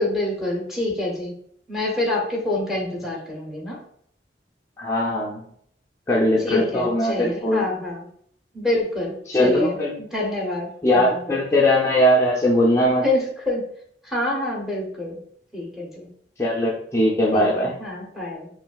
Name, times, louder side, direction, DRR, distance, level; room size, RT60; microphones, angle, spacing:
voice 1, 0.0-1.3 1.7-3.8 6.4-8.1 8.5-11.3 13.0-13.6 14.0-15.2 15.5-16.1 17.3-18.5, left 2 dB, ahead, -2 dB, 1.0 m, -27 dB
voice 2, 4.8-5.4 6.1-7.7 9.3-10.0 10.8-13.0 16.4-17.7, left 1 dB, 15° left, -6 dB, 0.5 m, -20 dB
5.3 x 2.6 x 2.3 m, 0.64 s
head